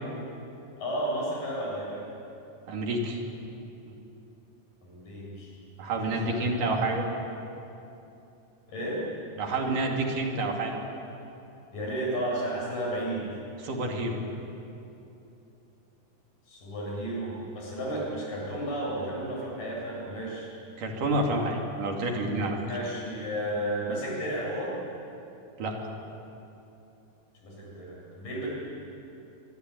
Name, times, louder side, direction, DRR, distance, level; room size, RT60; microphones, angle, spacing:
voice 1, 0.8-2.0 4.8-5.5 6.2-6.5 8.7-9.1 11.7-13.3 16.5-20.5 22.6-24.8 27.4-28.5, right 1 dB, 65° left, -4 dB, 9.5 m, -33 dB
voice 2, 2.7-3.2 5.8-7.0 9.4-10.8 13.6-14.2 20.8-22.6 25.6-25.9, right 2 dB, 60° right, 1 dB, 4.1 m, -28 dB
24.0 x 24.0 x 9.3 m, 2.9 s
omnidirectional pair, 4.2 m